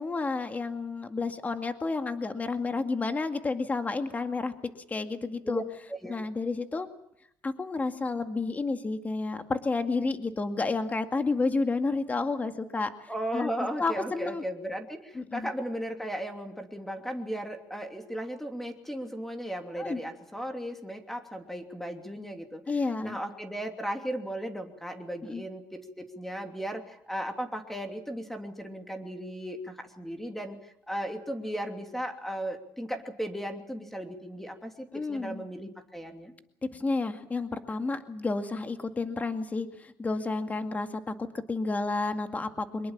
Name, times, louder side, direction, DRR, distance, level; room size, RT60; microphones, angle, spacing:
voice 1, 0.0-4.5 4.9-5.6 6.1-6.9 7.4-14.4 15.1-15.5 19.8-20.0 22.7-23.2 25.3-25.4 34.9-35.4 36.7-42.9, left 3 dB, 20° left, 7 dB, 2.1 m, -31 dB
voice 2, 13.1-22.6 23.0-36.3, equal, 5° left, 5 dB, 2.9 m, -36 dB
24.5 x 21.5 x 7.4 m, 0.74 s
cardioid pair, 115°, 7 cm